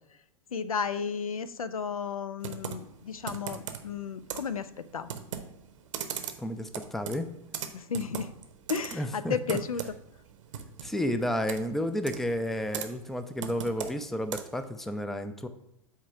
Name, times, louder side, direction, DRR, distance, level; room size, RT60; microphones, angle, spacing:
voice 1, 0.5-5.1 7.7-8.3 8.7-9.9, left 6 dB, 75° left, 15 dB, 0.4 m, -33 dB
Computer keyboard, 2.4-14.7, right 8 dB, 60° right, 0.8 m, -40 dB
voice 2, 6.4-7.3 8.9-9.6 10.8-15.5, equal, ahead, 10 dB, 0.4 m, -31 dB
8.3 x 2.9 x 5.6 m, 0.86 s
figure-of-eight pair, 90°, 18 cm